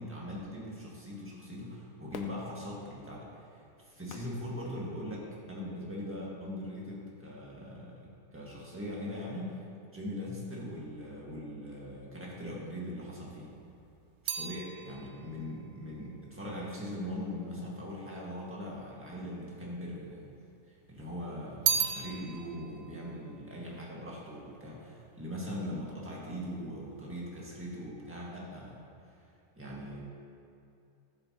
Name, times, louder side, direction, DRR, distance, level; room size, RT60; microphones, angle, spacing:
voice 1, 0.0-8.0 8.3-9.6 9.9-13.5 14.2-20.2 20.7-28.8 29.6-30.0, left 1 dB, 10° right, -5 dB, 1.7 m, -41 dB
Fireworks, 2.1-5.4 6.0-6.1, left 6 dB, 75° left, 1.0 m, -50 dB
sound 1, 13.3-17.7 18.5-19.3 19.6-20.7 21.1-24.6 24.9-25.4, right 7 dB, 70° right, 0.5 m, -37 dB
13.0 x 7.8 x 3.0 m, 2.6 s
omnidirectional pair, 1.5 m